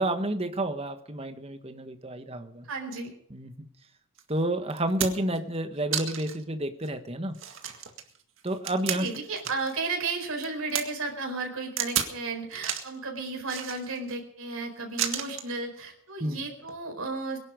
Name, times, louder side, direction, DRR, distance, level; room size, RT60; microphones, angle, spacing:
voice 1, 0.0-2.7 3.3-3.7 4.3-7.4 8.4-9.1 16.2-16.4, right 1 dB, 25° right, 8 dB, 1.4 m, -30 dB
voice 2, 2.7-3.1 8.9-17.4, right 3 dB, 85° right, 2 dB, 4.7 m, -33 dB
sound 1, 4.2-4.3 4.7-5.4 5.9-6.4 6.8-6.9 7.3-9.8 10.1-10.8 11.8-12.2 12.5-13.0 13.5-14.2 15.0-15.5 16.6-16.7, right 9 dB, 65° right, 2.0 m, -32 dB
22.5 x 11.0 x 5.2 m, 0.65 s
head